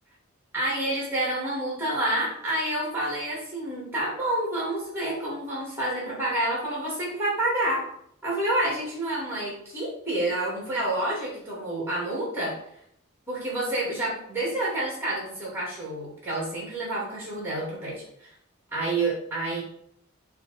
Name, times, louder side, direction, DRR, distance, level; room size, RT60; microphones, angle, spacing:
voice 1, 0.5-7.9 8.2-12.6 13.3-18.3 18.7-19.6, right 1 dB, 10° right, -4 dB, 2.6 m, -28 dB
6.7 x 3.6 x 4.4 m, 0.70 s
head